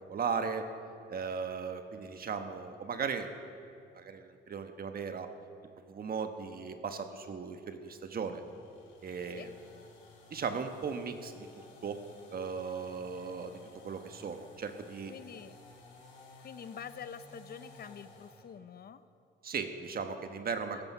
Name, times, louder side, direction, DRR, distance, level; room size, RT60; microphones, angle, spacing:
voice 1, 0.1-0.7 1.1-3.3 3.9-5.3 5.9-8.4 9.0-9.5 10.3-12.0 12.3-13.6 13.8-15.1 19.4-20.8, right 5 dB, 50° right, 7 dB, 1.3 m, -37 dB
sound 1, 8.2-18.5, left 3 dB, 90° left, 4.5 m, -56 dB
voice 2, 15.1-15.5 16.4-19.0 20.7-20.8, left 7 dB, 50° left, 13 dB, 0.7 m, -46 dB
15.5 x 13.5 x 5.7 m, 2.6 s
cardioid pair, 90°, 20 cm